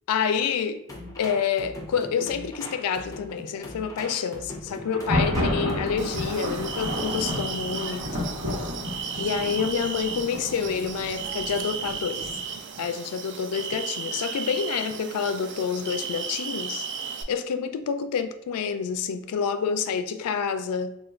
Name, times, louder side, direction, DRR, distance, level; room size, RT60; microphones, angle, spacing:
voice 1, 0.1-0.8 1.2-8.3 9.2-12.3 12.8-16.9 17.3-20.9, left 6 dB, 80° left, 0.3 m, -28 dB
sound 1, 0.9-6.4, left 2 dB, 15° left, 0.5 m, -40 dB
Thunder, 4.8-12.6, left 1 dB, 85° right, 1.2 m, -31 dB
sound 2, 6.0-17.2, right 6 dB, 55° right, 0.3 m, -35 dB
4.3 x 2.3 x 2.4 m
head